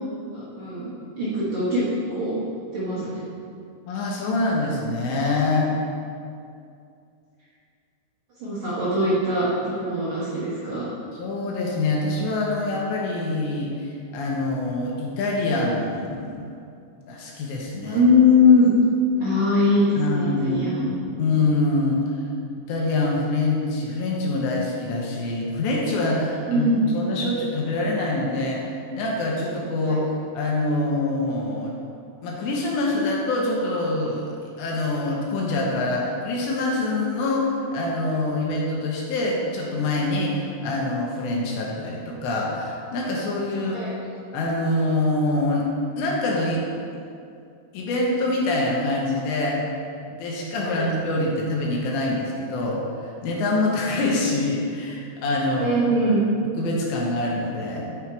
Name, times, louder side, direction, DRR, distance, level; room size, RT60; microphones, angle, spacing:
voice 1, 0.3-0.9 1.2-1.8 2.1-2.4 2.7-3.2 8.4-10.9 17.8-18.7 19.2-20.9 26.5-26.8 29.9-30.0 43.7-43.9 50.6-50.8 55.6-56.2, left 2 dB, 60° right, -10 dB, 2.0 m, -21 dB
voice 2, 3.9-5.8 11.1-16.5 17.0-18.0 20.0-22.2 22.7-30.0 30.3-31.7 32.2-43.8 44.3-45.7 46.0-46.6 47.7-49.6 50.1-55.8 56.6-57.9, left 2 dB, 75° left, -2 dB, 2.9 m, -25 dB
10.0 x 4.8 x 4.5 m, 2.5 s
omnidirectional pair, 5.6 m